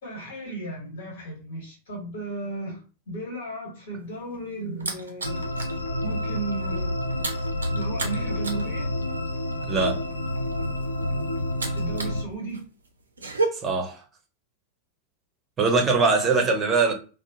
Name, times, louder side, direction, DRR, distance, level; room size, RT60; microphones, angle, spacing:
voice 1, 0.0-2.8 3.1-5.4 6.0-6.9 7.7-9.0 11.7-12.6, right 2 dB, 60° left, 1.4 m, -35 dB
sound 1, 4.0-5.8 6.2-6.4 6.6-12.2 12.5-13.5, right 3 dB, 75° right, 0.5 m, -33 dB
sound 2, 5.2-12.2, left 1 dB, 85° left, 0.3 m, -29 dB
voice 2, 9.7-10.0 13.5-14.0 15.6-16.9, right 4 dB, 25° right, 0.7 m, -22 dB
2.6 x 2.1 x 2.7 m
figure-of-eight pair, 90°, 0 cm